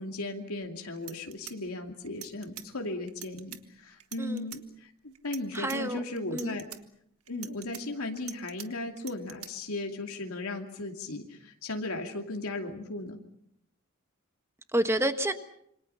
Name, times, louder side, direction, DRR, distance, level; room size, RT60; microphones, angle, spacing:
voice 1, 0.0-6.7 7.3-13.2, left 2 dB, 75° left, 2.6 m, -36 dB
sound 1, 0.6-0.7 1.0-2.7 3.1-3.6 4.0-4.6 5.1-5.8 6.2-6.8 7.3-8.7 9.0-9.5, right 12 dB, 80° right, 1.7 m, -44 dB
voice 2, 5.5-6.0 6.3-6.6 14.7-15.3, right 1 dB, 10° right, 1.4 m, -29 dB
27.5 x 25.5 x 5.7 m
head